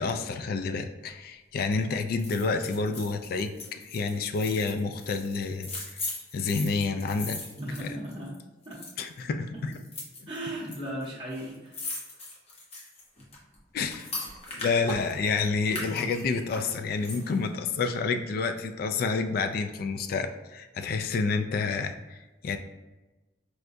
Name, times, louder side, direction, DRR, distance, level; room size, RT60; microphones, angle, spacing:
voice 1, 0.0-5.7 6.3-7.4 7.8-7.9 9.0-9.7 10.2-10.3 13.7-14.1 14.5-22.6, left 4 dB, 55° left, 7 dB, 0.3 m, -29 dB
sound 1, 2.2-8.4 8.6-9.2 9.7-10.8 11.0-11.1 11.3-15.3 15.7-17.5 17.8-17.9, left 2 dB, 35° left, 0.7 m, -39 dB
voice 2, 7.6-8.3 8.6-8.8 10.3-11.8, right 1 dB, 25° right, -6 dB, 0.8 m, -36 dB
4.7 x 2.2 x 2.6 m, 1.1 s
head